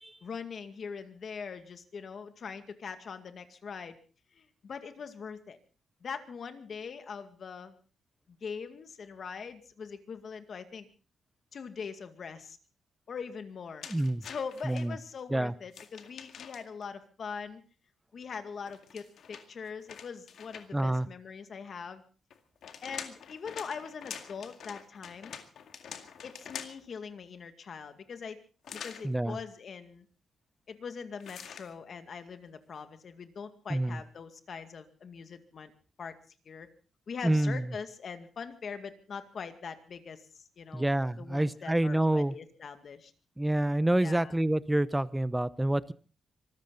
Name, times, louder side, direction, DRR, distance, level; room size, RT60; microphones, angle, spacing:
voice 1, 0.2-4.0 4.3-5.6 6.0-7.7 8.3-10.9 11.5-12.6 13.1-13.9 14.2-17.6 18.1-22.0 22.8-25.3 26.2-28.4 28.7-30.1 30.7-35.7 36.0-36.2 36.5-36.7 37.1-40.9 41.2-43.1 44.0-44.3, left 6 dB, 50° left, 9 dB, 2.1 m, -42 dB
sound 1, 13.8-14.8 15.7-16.8 18.6-20.9 22.3-26.9 28.6-29.1 31.2-31.7, left 7 dB, 70° left, 2.1 m, -45 dB
voice 2, 13.9-14.2 14.6-15.0 15.3-15.5 20.7-21.1 29.0-29.4 33.7-34.0 37.2-37.7 40.7-42.4 43.4-45.9, right 1 dB, 10° right, 17 dB, 0.7 m, -27 dB
25.0 x 14.5 x 4.0 m, 0.37 s
cardioid pair, 120°, 0 cm